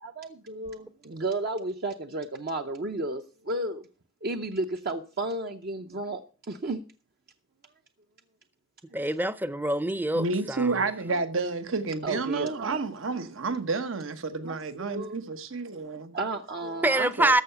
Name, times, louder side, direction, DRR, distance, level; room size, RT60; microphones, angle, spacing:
voice 1, 0.0-3.8 4.2-6.2 6.5-6.8 8.9-9.1 12.0-12.9 14.4-15.2 16.1-17.4, right 2 dB, 55° right, 0.7 m, -33 dB
voice 2, 8.9-10.7 12.7-12.8 16.8-17.4, right 1 dB, 10° right, 0.5 m, -25 dB
voice 3, 10.1-16.1, right 3 dB, 80° right, 1.1 m, -30 dB
14.0 x 5.6 x 6.7 m
head